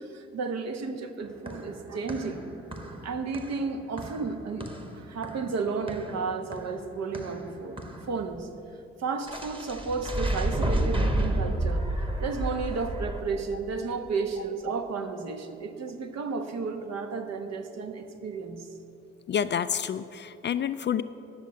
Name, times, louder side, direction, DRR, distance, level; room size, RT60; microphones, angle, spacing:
voice 1, 0.0-2.5 3.0-4.7 4.9-8.5 9.0-11.8 12.2-18.7, right 4 dB, 55° right, 6 dB, 1.1 m, -33 dB
sound 1, 1.2-8.2 9.3-13.2, right 1 dB, 15° right, 1.4 m, -31 dB
voice 2, 19.3-21.0, left 8 dB, 35° left, 13 dB, 0.4 m, -28 dB
10.0 x 7.2 x 7.7 m, 2.8 s
hypercardioid pair, 45°, 32 cm